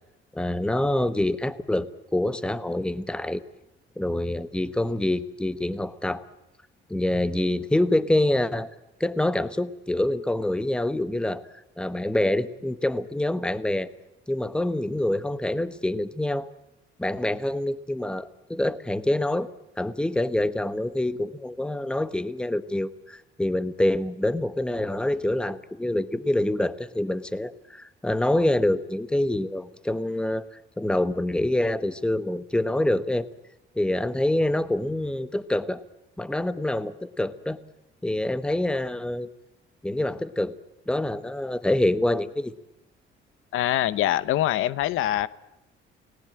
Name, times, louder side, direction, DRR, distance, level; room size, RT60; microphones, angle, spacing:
voice 1, 0.3-3.4 4.0-6.3 6.9-8.7 9.0-11.4 11.8-13.9 14.3-16.5 17.0-19.5 19.8-30.4 30.8-33.3 33.8-35.8 36.2-37.6 38.0-39.3 39.8-40.5 40.9-42.5, left 1 dB, 5° left, 13 dB, 1.0 m, -26 dB
voice 2, 43.5-45.3, left 13 dB, 90° left, 17 dB, 0.8 m, -24 dB
29.5 x 19.0 x 8.8 m, 0.92 s
cardioid pair, 140°, 21 cm